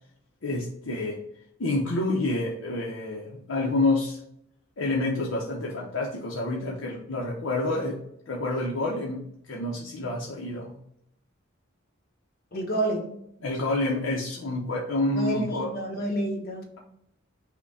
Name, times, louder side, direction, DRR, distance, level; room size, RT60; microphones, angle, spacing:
voice 1, 0.4-1.2 1.6-4.2 4.8-8.0 8.3-10.8 13.4-15.7, left 2 dB, 65° left, -2 dB, 0.7 m, -28 dB
voice 2, 12.5-13.1 15.1-16.7, right 1 dB, 45° left, 0 dB, 1.1 m, -29 dB
5.8 x 2.2 x 4.0 m, 0.75 s
head